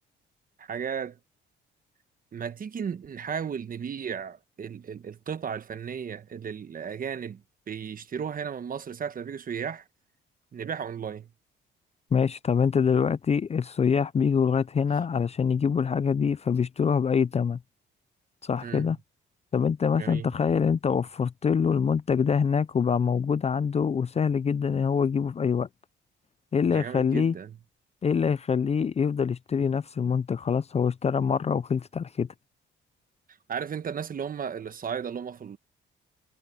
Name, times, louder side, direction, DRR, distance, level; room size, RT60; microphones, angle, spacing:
voice 1, 0.6-1.2 2.3-7.4 7.7-9.8 10.5-11.3 18.6-18.9 19.9-20.3 26.6-27.6 33.5-35.6, right 7 dB, 45° right, 1.2 m, -34 dB
voice 2, 12.1-17.6 18.4-19.0 19.5-25.7 26.5-27.3 28.0-32.3, left 6 dB, 30° left, 0.5 m, -25 dB
cardioid pair, 90°, 20 cm